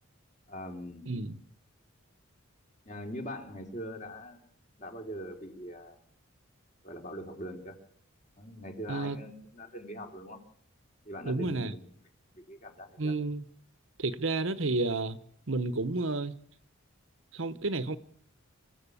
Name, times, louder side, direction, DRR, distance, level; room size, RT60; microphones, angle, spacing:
voice 1, 0.5-1.1 2.8-4.4 4.8-6.0 6.8-7.8 8.4-10.4 11.0-11.9 12.3-13.1, equal, 35° left, 3.5 m, -42 dB
voice 2, 1.1-1.4 8.9-9.2 11.3-11.7 13.0-13.4 14.0-15.2 15.5-16.4 17.3-18.0, right 3 dB, 65° right, 1.0 m, -31 dB
25.5 x 14.0 x 8.5 m
head